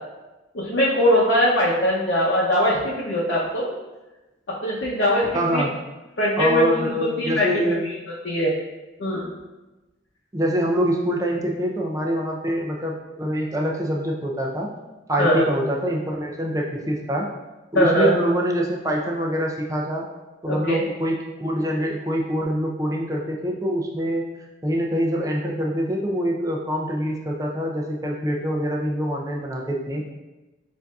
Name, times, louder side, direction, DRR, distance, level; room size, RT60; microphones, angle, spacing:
voice 1, 0.5-3.6 4.6-5.6 6.2-6.9 7.2-7.9 8.2-8.5 9.0-9.3 15.2-15.5 17.7-18.1 20.5-20.8, equal, 85° left, -7 dB, 0.7 m, -21 dB
voice 2, 5.3-5.7 6.4-7.9 10.3-14.7 15.1-17.3 17.7-20.1 20.4-24.2 24.6-30.0, equal, 20° right, -1 dB, 0.5 m, -25 dB
7.1 x 2.6 x 2.3 m, 1.1 s
head